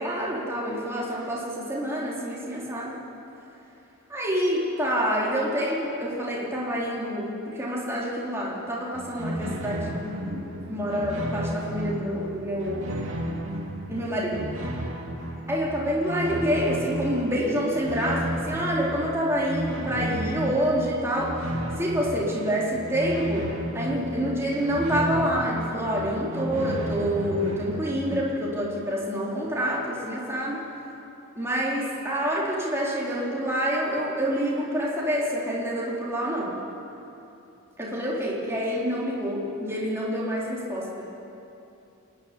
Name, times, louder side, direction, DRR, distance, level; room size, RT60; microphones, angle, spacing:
voice 1, 0.0-2.9 4.1-12.9 13.9-14.5 15.5-21.5 21.8-30.7 31.4-36.6 37.8-41.0, equal, 10° right, -5 dB, 4.0 m, -27 dB
sound 1, 8.9-28.2, right 1 dB, 60° right, 2.9 m, -33 dB
26.5 x 11.0 x 9.8 m, 2.8 s
head